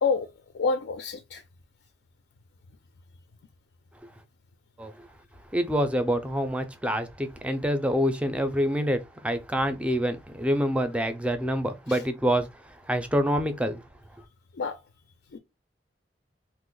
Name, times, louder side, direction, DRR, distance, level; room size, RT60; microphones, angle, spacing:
voice 1, 0.5-1.4 11.9-12.0 14.5-14.8 15.3-15.4, left 4 dB, 85° left, 0.4 m, -27 dB
voice 2, 5.5-12.5 12.9-13.8, equal, 5° right, 0.4 m, -26 dB
2.8 x 2.0 x 3.8 m
head